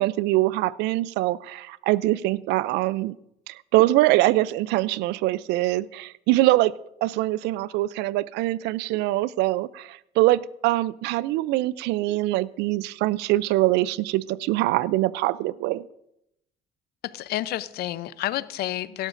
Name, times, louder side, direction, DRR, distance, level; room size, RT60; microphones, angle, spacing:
voice 1, 0.0-3.1 3.5-6.7 7.0-15.9, right 17 dB, 90° right, 20 dB, 0.4 m, -23 dB
voice 2, 17.0-19.1, left 14 dB, 70° left, 16 dB, 0.6 m, -30 dB
17.0 x 12.5 x 2.6 m, 0.81 s
cardioid pair, 110°, 17 cm